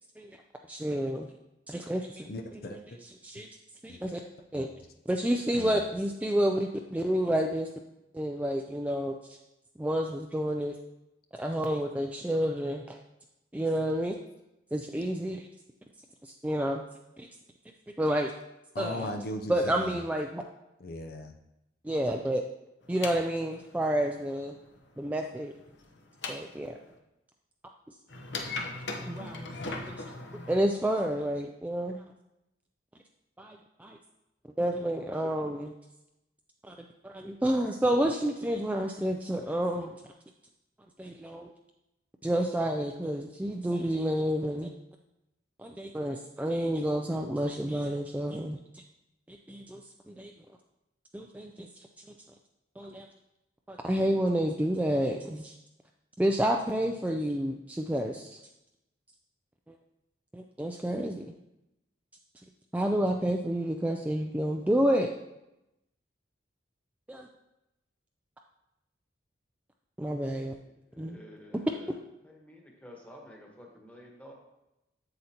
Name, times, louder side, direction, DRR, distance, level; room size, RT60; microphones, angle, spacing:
voice 1, 0.7-1.3 1.7-2.3 3.0-3.5 3.8-4.2 4.5-4.7 5.1-7.7 8.1-9.4 9.8-10.8 11.3-13.0 13.5-14.2 14.7-15.5 16.2-16.8 17.2-17.3 18.0-18.3 18.8-19.1 19.5-20.4 21.8-22.4 22.9-24.6 25.0-25.5 26.3-26.8 29.1-30.0 30.5-32.0 33.4-34.0 34.6-35.7 36.6-36.8 37.0-39.9 41.0-41.5 42.2-44.7 45.6-48.8 49.3-50.3 51.1-51.9 52.8-53.1 53.7-55.6 56.2-58.4 59.7-59.8 60.3-61.3 62.7-65.1 67.1-67.3 70.0-70.6 71.0-71.2, right 1 dB, 10° right, 3 dB, 0.3 m, -30 dB
voice 2, 2.3-3.0 3.4-3.5 3.9-4.0 4.5-4.7 5.5-5.8 18.7-20.0 20.8-21.3, left 1 dB, 55° left, 5 dB, 0.5 m, -38 dB
sound 1, 22.8-26.9 28.1-30.6, left 3 dB, 75° left, 0.9 m, -39 dB
voice 3, 70.7-74.3, left 1 dB, 10° left, -1 dB, 1.3 m, -51 dB
7.8 x 7.7 x 2.9 m, 0.91 s
head